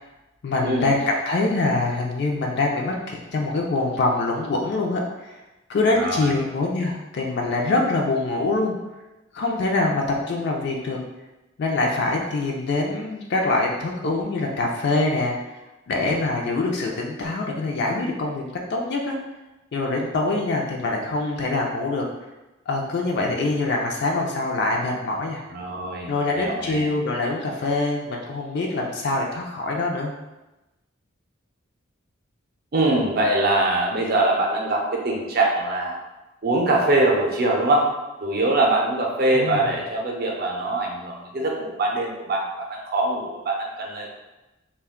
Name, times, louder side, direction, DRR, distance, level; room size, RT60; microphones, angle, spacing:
voice 1, 0.4-5.4 5.7-8.7 9.3-11.0 11.6-15.4 15.9-19.2 19.7-22.1 22.7-25.4 26.1-30.1 39.3-39.8, left 2 dB, 60° left, 0 dB, 0.4 m, -24 dB
voice 2, 5.9-6.4 25.5-26.9 32.7-36.0 36.4-37.9 38.2-44.2, right 2 dB, 50° right, -1 dB, 0.5 m, -23 dB
2.4 x 2.2 x 3.5 m, 1.0 s
head